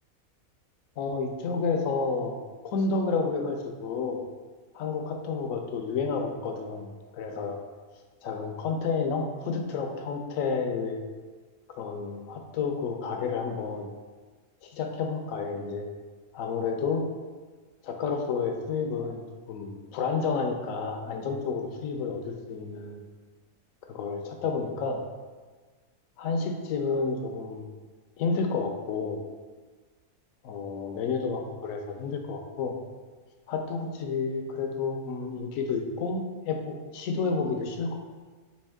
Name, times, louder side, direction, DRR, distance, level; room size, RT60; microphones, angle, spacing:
voice 1, 1.0-4.2 4.7-7.6 8.2-11.0 11.7-13.9 14.6-15.8 16.3-17.0 17.8-19.2 19.5-23.0 23.9-25.0 26.2-27.6 28.2-29.2 30.4-32.8 33.5-38.0, left 4 dB, 70° left, 3 dB, 0.9 m, -30 dB
5.3 x 2.9 x 3.4 m, 1.4 s
omnidirectional pair, 1.6 m